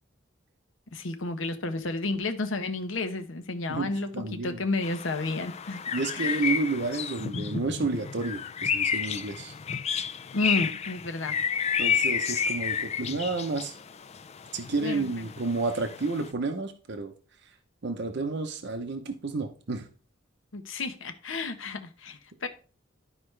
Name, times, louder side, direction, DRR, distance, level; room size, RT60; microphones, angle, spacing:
voice 1, 0.9-5.8 6.1-6.5 10.3-11.4 14.8-15.3 20.5-22.5, left 2 dB, 80° left, 1.0 m, -31 dB
voice 2, 3.7-4.6 5.9-9.5 11.8-13.7 14.5-17.1 17.8-19.9, right 3 dB, 60° right, 0.8 m, -31 dB
sound 1, 4.8-16.3, left 7 dB, 35° left, 0.4 m, -31 dB
12.0 x 4.8 x 3.3 m
head